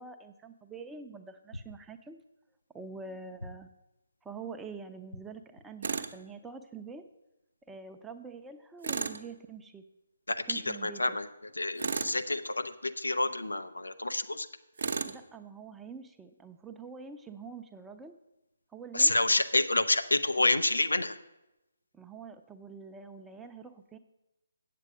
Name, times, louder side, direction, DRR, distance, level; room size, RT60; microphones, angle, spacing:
voice 1, 0.0-2.2 2.7-3.7 4.2-7.0 7.7-9.8 10.5-11.2 15.0-18.1 18.7-19.4 21.9-24.0, right 4 dB, 5° right, 6 dB, 0.6 m, -45 dB
Tools, 5.8-6.2 8.8-9.2 11.8-12.2 14.8-15.2, right 5 dB, 55° right, 0.7 m, -33 dB
voice 2, 10.3-11.3 11.5-14.5 18.9-21.2, left 2 dB, 80° left, 9 dB, 0.7 m, -28 dB
8.2 x 7.6 x 6.1 m, 0.94 s
figure-of-eight pair, 145°, 0 cm